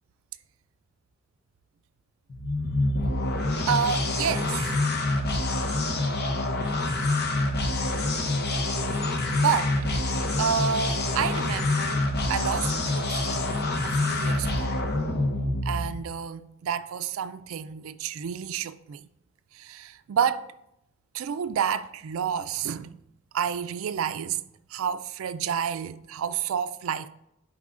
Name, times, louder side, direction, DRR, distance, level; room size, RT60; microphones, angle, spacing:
sound 1, 2.3-16.1, left 2 dB, 50° left, 0.8 m, -26 dB
voice 1, 3.7-4.8 8.5-8.8 9.3-13.5 13.8-14.7 15.6-19.0 19.5-20.5 21.1-23.0 23.3-24.4 24.7-27.1, right 7 dB, 70° right, 0.3 m, -30 dB
10.5 x 4.8 x 2.5 m
head